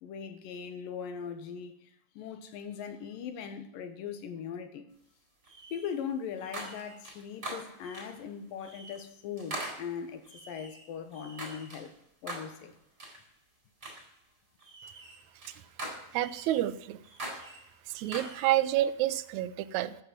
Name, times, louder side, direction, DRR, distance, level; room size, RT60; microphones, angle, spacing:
voice 1, 0.0-4.9 5.7-11.9 12.2-12.7, left 7 dB, 75° left, 2.9 m, -40 dB
sound 1, 5.5-6.0 6.4-8.2 8.6-9.0 9.4-11.9 12.3-12.6 13.0-13.2 13.8-14.1 14.6-16.6 17.0-18.7, right 2 dB, 20° right, 3.9 m, -43 dB
voice 2, 16.1-17.0 17.9-20.0, right 13 dB, 75° right, 1.7 m, -29 dB
14.0 x 7.7 x 6.1 m
omnidirectional pair, 4.0 m